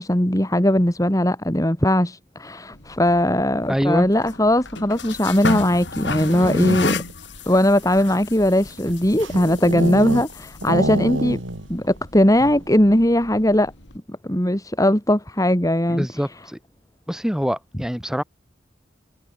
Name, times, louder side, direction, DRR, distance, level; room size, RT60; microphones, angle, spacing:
voice 1, 0.0-7.0 7.5-11.4 11.7-13.7 14.2-16.1, left 1 dB, 20° left, 3.1 m, -19 dB
sound 1, 2.7-14.0, left 3 dB, 65° left, 3.9 m, -33 dB
voice 2, 3.7-4.1 15.9-16.6 17.1-18.2, equal, 5° right, 3.1 m, -24 dB
sound 2, 6.1-7.1 7.8-10.3 10.6-11.7 12.0-12.1 12.4-12.7, right 1 dB, 85° right, 7.6 m, -27 dB
head